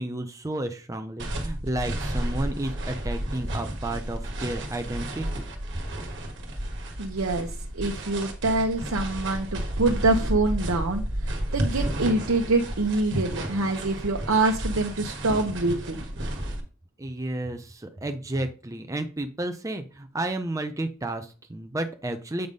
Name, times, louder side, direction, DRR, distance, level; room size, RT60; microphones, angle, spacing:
voice 1, 0.0-5.4 17.0-22.5, right 1 dB, 15° right, 6 dB, 0.5 m, -32 dB
sound 1, 1.2-16.6, right 1 dB, 60° right, 1.5 m, -32 dB
voice 2, 7.0-16.1, right 2 dB, 80° right, 2 dB, 0.9 m, -25 dB
7.9 x 3.6 x 5.2 m, 0.35 s
head